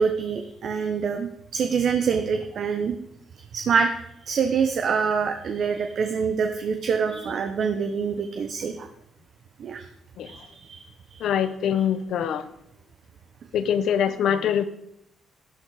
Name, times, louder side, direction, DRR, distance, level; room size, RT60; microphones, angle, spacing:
voice 1, 0.0-3.0 3.5-3.9 4.2-8.9 9.6-9.9 10.2-10.8 11.1-11.3, right 6 dB, 60° right, 6 dB, 1.0 m, -25 dB
voice 2, 11.2-12.5 13.5-14.7, left 8 dB, 75° left, 12 dB, 0.9 m, -24 dB
12.0 x 11.0 x 4.9 m, 0.78 s
cardioid pair, 90°, 0 cm